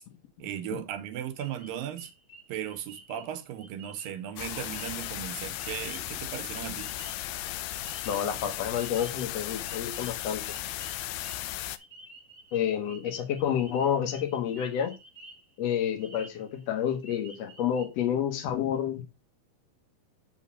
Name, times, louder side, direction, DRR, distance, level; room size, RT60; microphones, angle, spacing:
voice 1, 0.4-2.1 2.5-6.9, right 10 dB, 70° right, 2.6 m, -37 dB
sound 1, 1.4-6.3 6.8-7.6 7.8-15.5 15.8-16.7 17.0-17.9, right 2 dB, 5° left, 1.8 m, -51 dB
sound 2, 4.4-11.8, left 14 dB, 80° left, 2.2 m, -36 dB
voice 2, 8.1-10.6 12.5-14.9 15.6-19.0, left 9 dB, 60° left, 1.9 m, -29 dB
8.2 x 6.1 x 4.1 m
omnidirectional pair, 4.4 m